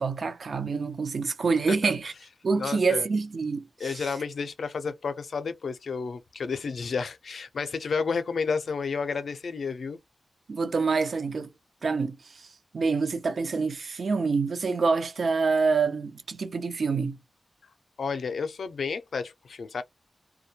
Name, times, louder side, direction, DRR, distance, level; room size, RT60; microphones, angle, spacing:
voice 1, 0.0-2.1 2.4-4.0 10.5-11.5 11.8-12.5 12.7-17.2, right 4 dB, 70° right, 0.5 m, -26 dB
voice 2, 2.6-3.1 3.8-10.0 18.0-19.8, left 5 dB, 80° left, 0.4 m, -31 dB
2.2 x 2.2 x 2.7 m
cardioid pair, 65°, 0 cm